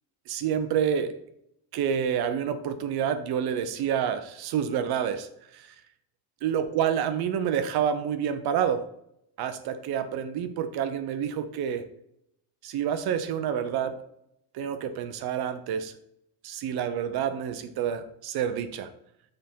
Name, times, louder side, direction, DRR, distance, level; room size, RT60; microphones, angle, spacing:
voice 1, 0.3-1.2 1.7-5.7 6.4-8.9 9.4-11.9 12.6-14.1 14.5-15.9 16.4-18.9, right 8 dB, 55° right, 10 dB, 0.8 m, -28 dB
6.6 x 4.0 x 5.4 m, 0.77 s
cardioid pair, 175°, 45 cm